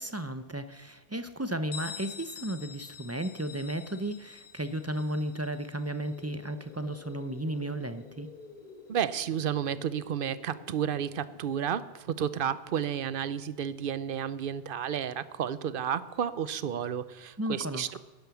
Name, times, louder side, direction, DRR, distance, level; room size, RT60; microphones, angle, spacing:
voice 1, 0.0-8.3 17.4-17.8, right 1 dB, 20° right, 10 dB, 0.6 m, -34 dB
Bell, 1.7-7.2, left 8 dB, 80° left, 1.2 m, -47 dB
sound 1, 6.1-11.4, left 4 dB, 50° left, 1.6 m, -50 dB
voice 2, 8.9-18.0, right 8 dB, 60° right, 15 dB, 0.8 m, -32 dB
11.5 x 10.5 x 7.0 m, 1.2 s
omnidirectional pair, 1.1 m